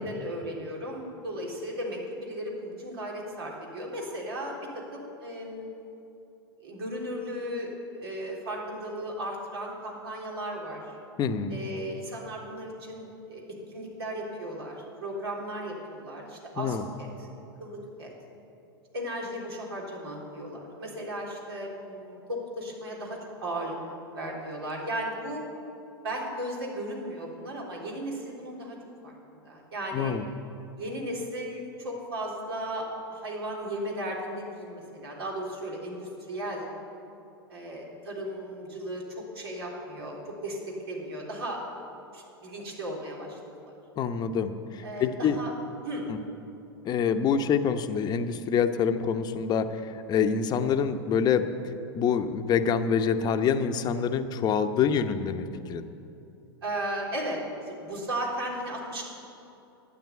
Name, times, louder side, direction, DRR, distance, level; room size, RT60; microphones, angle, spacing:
voice 1, 0.0-5.7 6.6-7.7 7.9-10.9 11.5-13.4 13.7-17.3 17.6-18.1 18.9-23.8 24.1-25.4 26.0-28.8 29.0-30.1 30.8-36.6 37.5-40.2 40.4-40.6 40.9-41.6 42.1-43.4 43.6-43.7 44.8-45.5 45.8-46.1 50.3-50.6 56.6-59.0, right 1 dB, 80° right, -2 dB, 3.6 m, -36 dB
voice 2, 11.2-11.6 16.6-16.8 29.9-30.2 44.0-45.4 46.1-46.2 46.8-51.5 51.9-55.9, left 7 dB, 30° left, 8 dB, 0.9 m, -26 dB
12.5 x 9.0 x 8.4 m, 2.8 s
hypercardioid pair, 100°, 13 cm